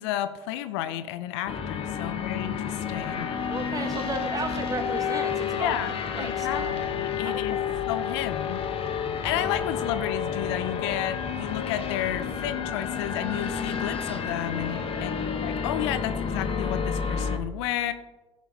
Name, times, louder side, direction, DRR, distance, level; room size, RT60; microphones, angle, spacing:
voice 1, 0.0-3.3 5.6-5.9 6.2-7.6 7.9-8.6 9.2-17.9, left 12 dB, 65° left, 11 dB, 0.7 m, -32 dB
sound 1, 1.5-17.4, left 6 dB, 40° left, 1.4 m, -30 dB
voice 2, 3.5-5.8 6.1-6.9 7.2-7.7 14.9-15.3, right 3 dB, 25° right, 7 dB, 1.7 m, -35 dB
15.5 x 6.1 x 4.1 m, 1.1 s
figure-of-eight pair, 65°, 15 cm